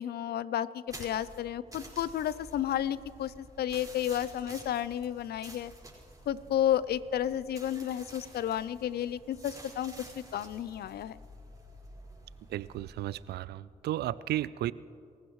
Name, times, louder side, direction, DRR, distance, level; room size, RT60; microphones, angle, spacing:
voice 1, 0.0-5.7 6.3-11.2, left 10 dB, 75° left, 18 dB, 0.5 m, -32 dB
sound 1, 0.9-13.3, right 1 dB, 20° right, 4.9 m, -51 dB
voice 2, 12.5-14.7, right 13 dB, 80° right, 19 dB, 0.4 m, -34 dB
29.0 x 15.0 x 3.2 m, 2.5 s
supercardioid pair, 55°, 17 cm